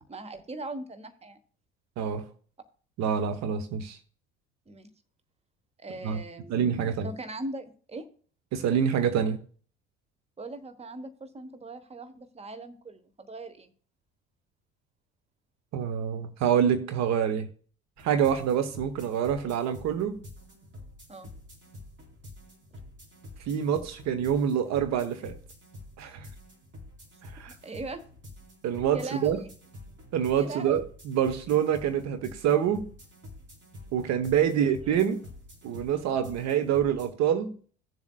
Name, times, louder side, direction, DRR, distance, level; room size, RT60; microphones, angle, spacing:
voice 1, 0.1-1.4 4.7-4.9 5.8-8.1 10.4-13.7 21.1-21.3 27.5-28.0 28.9-29.5 30.3-30.8 34.6-35.0, right 2 dB, 20° right, 1.2 m, -40 dB
voice 2, 2.0-2.3 3.0-4.0 6.0-6.2 6.5-7.1 8.5-9.4 15.7-17.5 18.0-20.2 23.5-25.3 26.0-26.3 27.2-27.5 28.6-29.4 30.1-32.9 33.9-35.2 35.6-37.5, right 8 dB, 50° right, 1.0 m, -26 dB
sound 1, 18.0-37.1, left 1 dB, 35° right, 4.1 m, -48 dB
17.5 x 7.2 x 2.3 m
figure-of-eight pair, 55°, 35 cm